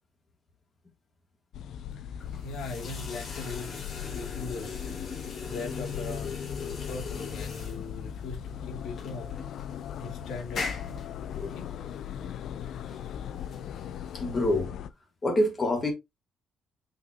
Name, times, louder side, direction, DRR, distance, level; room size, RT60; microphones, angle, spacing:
sound 1, 1.5-14.9, left 9 dB, 70° left, 0.5 m, -38 dB
voice 1, 1.9-4.8 5.5-9.3 10.0-10.7 11.4-11.7, left 3 dB, 90° left, 2.7 m, -40 dB
sound 2, 2.2-14.6, left 4 dB, 50° left, 3.1 m, -41 dB
voice 2, 14.1-14.7 15.2-15.9, left 1 dB, 25° left, 2.7 m, -26 dB
6.1 x 6.1 x 2.9 m
cardioid pair, 155°, 0 cm